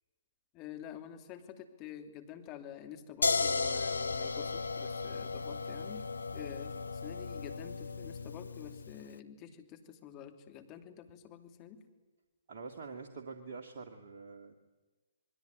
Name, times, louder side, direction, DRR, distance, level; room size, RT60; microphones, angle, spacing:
voice 1, 0.5-11.8, left 9 dB, 30° left, 6 dB, 2.7 m, -49 dB
sound 1, 3.2-9.0, left 4 dB, 80° left, 0.8 m, -35 dB
voice 2, 12.5-14.5, right 4 dB, 50° right, 4 dB, 2.2 m, -46 dB
27.5 x 22.0 x 9.4 m, 1.3 s
figure-of-eight pair, 125°, 0 cm